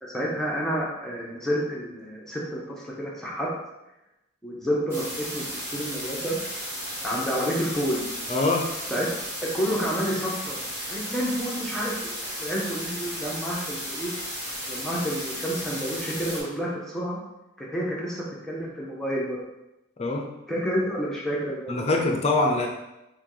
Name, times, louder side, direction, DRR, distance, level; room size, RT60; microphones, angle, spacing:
voice 1, 0.0-3.5 4.4-6.4 7.0-8.0 8.9-9.1 9.5-10.6 10.9-14.1 14.7-17.2 17.6-19.4 20.5-21.9, equal, ahead, -5 dB, 0.7 m, -29 dB
sound 1, 4.9-16.4, equal, 15° right, 1.4 m, -34 dB
voice 2, 8.3-8.7 20.0-20.3 21.7-22.7, left 2 dB, 35° left, 2 dB, 0.5 m, -23 dB
5.9 x 2.3 x 3.1 m, 0.92 s
head